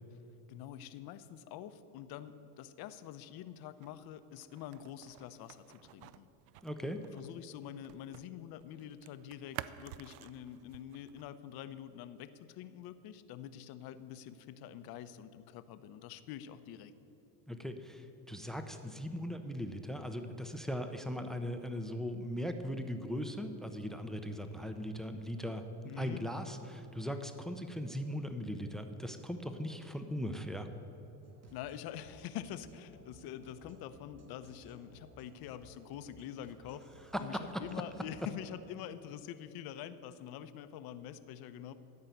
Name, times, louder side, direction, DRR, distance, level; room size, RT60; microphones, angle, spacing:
voice 1, 0.5-6.3 7.1-16.9 25.8-26.2 31.5-36.8 37.2-41.7, left 10 dB, 55° left, 12 dB, 0.8 m, -46 dB
sound 1, 3.8-8.3 8.6-11.3, right 13 dB, 55° right, 0.5 m, -51 dB
voice 2, 6.6-7.0 17.5-25.7 26.0-30.7 37.1-37.6, equal, ahead, 7 dB, 0.6 m, -39 dB
sound 2, 31.2-38.3, equal, 35° right, 1.7 m, -59 dB
13.5 x 5.6 x 9.1 m, 3.0 s
supercardioid pair, 120°, 44 cm